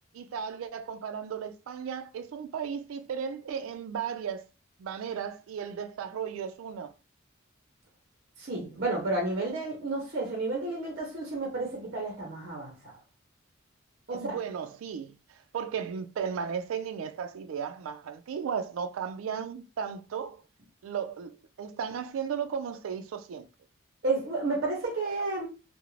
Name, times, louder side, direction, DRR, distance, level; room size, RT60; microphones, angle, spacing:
voice 1, 0.1-4.5 4.8-6.9 14.1-15.2 15.5-20.4 20.8-23.5, right 7 dB, 85° right, 0.3 m, -35 dB
voice 2, 8.4-12.9 14.1-14.4 24.0-25.5, right 2 dB, 50° right, 0.7 m, -31 dB
2.4 x 2.0 x 3.0 m
head